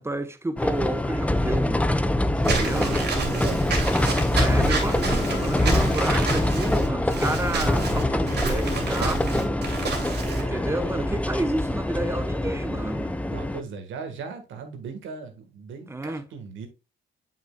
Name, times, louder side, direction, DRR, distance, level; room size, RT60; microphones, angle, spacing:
voice 1, 0.0-1.9 2.4-3.0 4.3-9.7 10.3-13.2 15.9-16.3, right 2 dB, 15° right, 0.9 m, -30 dB
sound 1, 0.6-13.6, left 1 dB, 5° left, 0.4 m, -25 dB
voice 2, 2.3-3.9 10.2-11.1 13.3-16.7, right 5 dB, 80° right, 1.6 m, -38 dB
Walk footsteps / Squeak, 2.4-10.4, right 4 dB, 55° right, 2.4 m, -29 dB
sound 2, 4.3-12.9, left 3 dB, 55° left, 2.2 m, -40 dB
7.4 x 5.6 x 2.3 m
cardioid pair, 90°, 20 cm